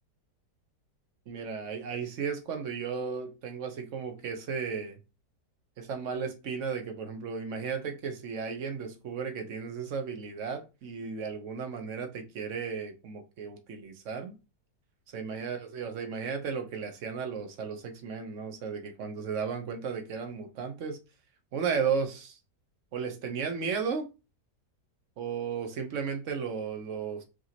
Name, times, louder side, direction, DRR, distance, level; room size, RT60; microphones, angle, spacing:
voice 1, 1.3-5.0 5.8-14.3 15.1-21.0 21.5-22.4 22.9-24.1 25.2-27.2, right 6 dB, 60° right, 0.9 m, -34 dB
4.8 x 3.0 x 2.8 m
omnidirectional pair, 1.8 m